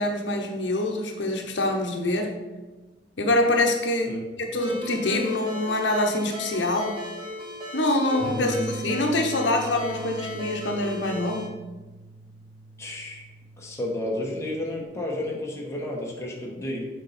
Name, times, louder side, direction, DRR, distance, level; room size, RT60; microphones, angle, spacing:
voice 1, 0.0-2.3 3.2-4.2 4.5-7.0 7.7-11.5, left 1 dB, 85° left, 3 dB, 0.9 m, -25 dB
Ringtone, 4.6-11.5, left 1 dB, 30° right, 1.8 m, -36 dB
voice 2, 8.2-8.7 12.8-13.3 13.6-16.9, left 1 dB, 15° left, -3 dB, 1.3 m, -31 dB
sound 1, 8.2-14.8, right 1 dB, 50° right, 1.1 m, -42 dB
7.2 x 4.4 x 4.2 m, 1.1 s
head